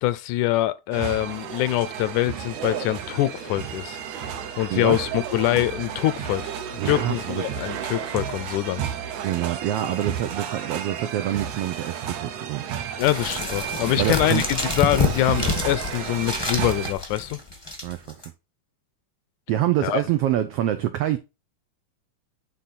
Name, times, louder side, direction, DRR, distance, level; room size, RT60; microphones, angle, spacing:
voice 1, 0.0-4.0 4.6-6.5 6.9-8.8 13.0-17.4 19.8-20.0, left 15 dB, 80° left, 1.9 m, -24 dB
sound 1, 0.9-16.9, right 8 dB, 70° right, 2.1 m, -32 dB
voice 2, 6.8-7.4 9.2-12.6 14.0-14.4 17.8-18.2 19.5-21.2, right 12 dB, 90° right, 1.3 m, -26 dB
sound 2, 13.0-18.3, left 3 dB, 30° left, 0.4 m, -28 dB
9.9 x 3.8 x 4.0 m
omnidirectional pair, 3.6 m